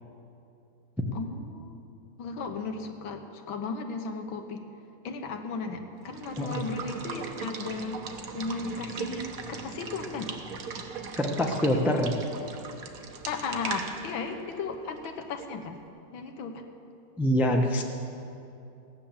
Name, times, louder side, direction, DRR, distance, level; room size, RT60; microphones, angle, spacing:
voice 1, 1.1-1.9 2.2-4.6 5.0-8.0 8.3-10.3 13.3-15.8 16.1-16.6, left 4 dB, 90° left, 6 dB, 1.9 m, -35 dB
Water / Water tap faucet / Liquid, 6.0-15.6, right 5 dB, 55° right, 1.2 m, -39 dB
voice 2, 11.1-12.1 17.2-17.8, equal, ahead, 2 dB, 0.4 m, -25 dB
16.0 x 9.9 x 7.2 m, 2.8 s
omnidirectional pair, 2.1 m